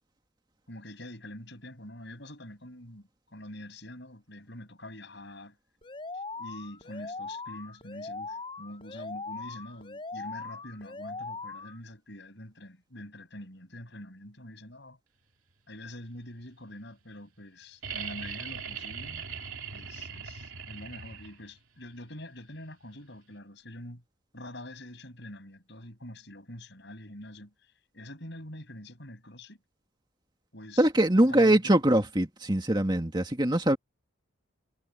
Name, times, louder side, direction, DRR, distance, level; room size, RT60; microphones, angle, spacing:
voice 1, 0.7-5.6 6.1-15.0 15.7-19.2 19.7-24.0 24.3-29.6 30.5-30.9 31.1-31.8, left 1 dB, 55° left, 7.5 m, -45 dB
Alarm, 5.8-11.8, left 3 dB, 25° left, 6.7 m, -40 dB
sound 1, 17.8-21.6 23.3-23.4, right 6 dB, 90° right, 3.2 m, -40 dB
voice 2, 30.8-33.8, right 1 dB, 20° right, 2.1 m, -23 dB
head